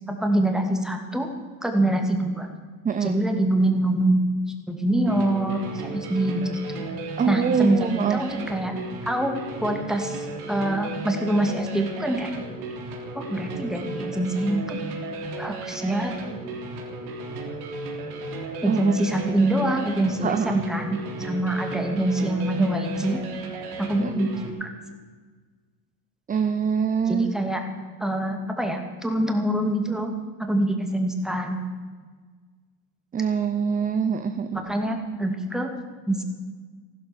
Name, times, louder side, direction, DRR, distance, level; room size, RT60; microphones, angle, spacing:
voice 1, 0.1-1.3 1.6-2.5 3.0-4.2 4.7-6.4 6.7-6.8 7.3-8.7 9.0-12.3 13.1-14.8 15.4-16.1 18.6-23.2 23.8-24.7 27.1-27.6 28.0-30.1 30.4-31.6 34.5-35.7 36.1-36.2, right 1 dB, ahead, 3 dB, 2.5 m, -25 dB
voice 2, 2.8-3.1 7.2-8.2 18.6-18.9 20.2-20.6 24.0-24.1 26.3-27.3 33.1-34.6, right 6 dB, 15° right, 9 dB, 0.8 m, -24 dB
sound 1, 5.0-24.5, right 2 dB, 70° right, 3.6 m, -35 dB
14.5 x 12.5 x 7.3 m, 1.5 s
supercardioid pair, 105°, 46 cm